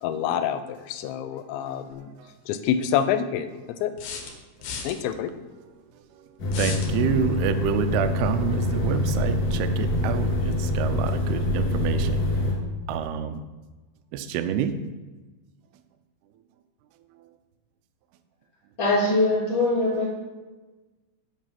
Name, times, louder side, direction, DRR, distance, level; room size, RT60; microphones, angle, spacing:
voice 1, 0.0-2.1 2.5-3.9 4.8-5.3, left 9 dB, 90° left, 11 dB, 2.9 m, -27 dB
sound 1, 1.9-2.0 4.0-5.0 6.5-6.9, left 5 dB, 70° left, 2.3 m, -34 dB
sound 2, 6.4-12.5, left 1 dB, 45° left, 2.7 m, -25 dB
voice 2, 6.6-12.2 12.9-13.4 14.1-14.7, right 8 dB, 85° right, 9 dB, 2.3 m, -28 dB
voice 3, 18.8-20.1, left 2 dB, 30° left, -5 dB, 3.0 m, -22 dB
7.5 x 5.4 x 5.8 m, 1.2 s
omnidirectional pair, 5.2 m